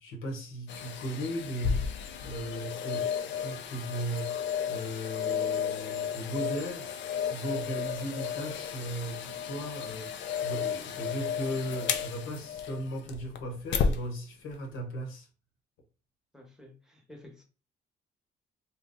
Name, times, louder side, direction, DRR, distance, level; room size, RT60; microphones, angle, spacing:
voice 1, 0.0-1.9 2.2-3.1 3.4-6.9 7.2-15.3, right 1 dB, 90° left, 1.0 m, -37 dB
sound 1, 0.7-14.0 14.5-14.6, left 7 dB, 70° left, 0.5 m, -33 dB
voice 2, 2.8-3.1 16.3-17.4, left 1 dB, 5° right, 0.9 m, -51 dB
2.6 x 2.2 x 3.7 m
cardioid pair, 90°, 20 cm